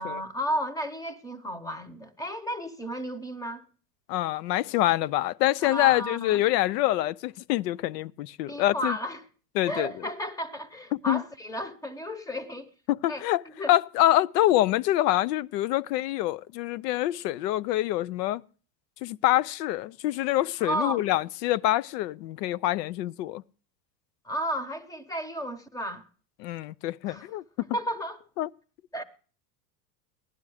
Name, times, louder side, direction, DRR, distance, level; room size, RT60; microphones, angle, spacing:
voice 1, 0.0-3.6 5.6-6.4 8.5-9.2 9.7-12.7 13.1-13.2 13.6-13.7 20.6-21.0 24.2-26.0 27.1-27.3 27.7-28.2 28.9-29.0, equal, 5° left, 0.9 m, -33 dB
voice 2, 4.1-9.0 9.6-9.9 11.1-11.2 12.9-13.4 13.7-18.4 19.0-23.4 26.4-27.4 28.4-28.5, left 15 dB, 80° left, 0.6 m, -25 dB
15.5 x 11.0 x 4.8 m
supercardioid pair, 125°, 48 cm